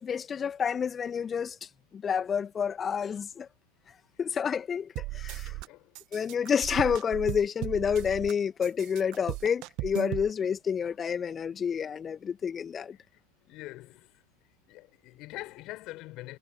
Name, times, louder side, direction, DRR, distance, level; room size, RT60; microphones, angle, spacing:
voice 1, 0.0-3.5 4.2-5.5 6.1-13.0, left 7 dB, 20° left, 2.2 m, -29 dB
sound 1, 5.0-5.7 5.9-8.3 8.6-10.3, right 22 dB, 40° right, 1.8 m, -36 dB
voice 2, 5.5-6.0 12.9-14.2 14.7-16.4, left 19 dB, 40° left, 6.3 m, -44 dB
figure-of-eight pair, 90°, 0 cm